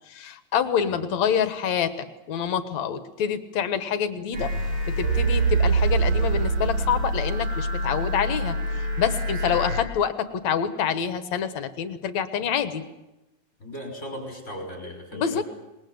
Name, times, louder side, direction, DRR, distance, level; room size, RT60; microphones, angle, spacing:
voice 1, 0.1-4.5 4.9-8.6 9.0-12.8 15.1-15.4, left 8 dB, 70° left, 11 dB, 2.7 m, -26 dB
sound 1, 4.3-9.8, right 2 dB, 85° right, 6.7 m, -25 dB
voice 2, 9.2-9.6 13.6-15.4, equal, 20° left, 2 dB, 6.1 m, -38 dB
26.5 x 21.0 x 7.9 m, 0.97 s
omnidirectional pair, 3.3 m